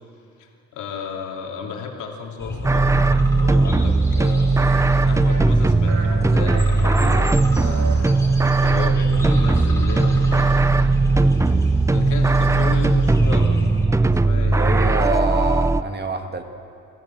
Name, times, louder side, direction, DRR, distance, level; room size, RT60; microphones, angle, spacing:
voice 1, 0.4-3.1 3.3-4.6 5.1-7.9 8.6-10.8 11.4-11.6 11.9-14.6, left 5 dB, 75° left, 0 dB, 3.1 m, -33 dB
sound 1, 2.4-13.9, left 1 dB, 10° left, 4.4 m, -33 dB
sound 2, 2.6-15.8, right 3 dB, 10° right, 0.4 m, -18 dB
sound 3, 4.7-4.8 5.3-5.6 5.9-6.2 6.5-7.2 7.6-8.0, right 5 dB, 60° right, 2.9 m, -32 dB
voice 2, 14.3-16.4, right 3 dB, 35° right, 5 dB, 1.9 m, -26 dB
27.0 x 14.5 x 7.6 m, 2.6 s
cardioid pair, 90°, 30 cm